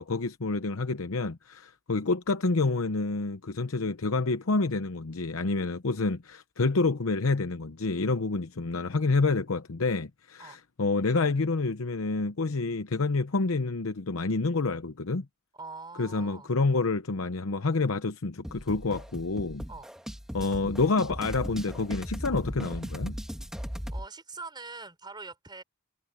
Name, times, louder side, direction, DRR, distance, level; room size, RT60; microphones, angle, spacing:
voice 1, 0.0-15.3 16.0-19.6 20.3-23.1, left 3 dB, 85° left, 0.8 m, -28 dB
voice 2, 15.5-16.5 19.7-19.9 20.4-20.6 23.9-25.6, right 4 dB, 20° right, 5.4 m, -43 dB
sound 1, 18.4-24.1, equal, 5° right, 1.9 m, -38 dB
head